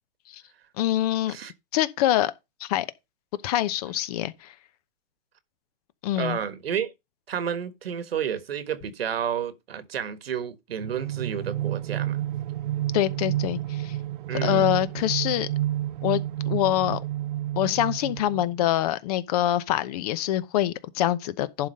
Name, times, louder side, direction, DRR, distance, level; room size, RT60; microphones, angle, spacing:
voice 1, 0.8-1.4 1.7-2.3 2.6-2.9 3.4-4.5 6.0-6.4 12.9-14.0 14.3-15.5 16.0-17.0 17.6-21.7, left 13 dB, 40° left, 0.8 m, -25 dB
voice 2, 6.2-6.9 7.3-12.2 14.3-14.7, right 8 dB, 85° right, 1.6 m, -31 dB
sound 1, 10.8-18.7, right 13 dB, 60° right, 0.6 m, -30 dB
11.0 x 4.1 x 5.5 m
hypercardioid pair, 150°, 29 cm